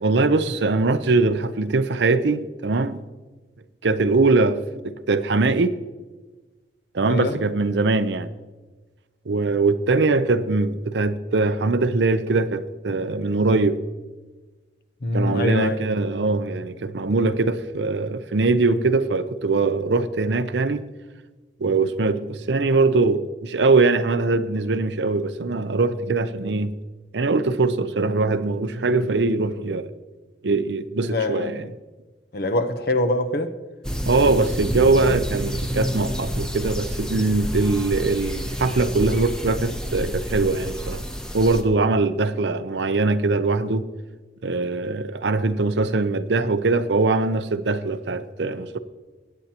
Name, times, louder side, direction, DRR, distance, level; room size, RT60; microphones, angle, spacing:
voice 1, 0.0-3.0 3.8-5.7 6.9-8.3 9.3-13.8 15.1-20.8 21.6-26.7 27.1-29.9 30.4-31.6 34.1-41.0 41.3-43.9 44.4-48.8, right 3 dB, 80° right, 0.6 m, -22 dB
voice 2, 7.0-7.4 15.0-15.8 31.0-31.7 32.3-33.5, left 2 dB, 60° left, 0.9 m, -24 dB
sound 1, 33.8-41.6, equal, 5° left, 0.8 m, -29 dB
21.0 x 9.0 x 2.9 m
head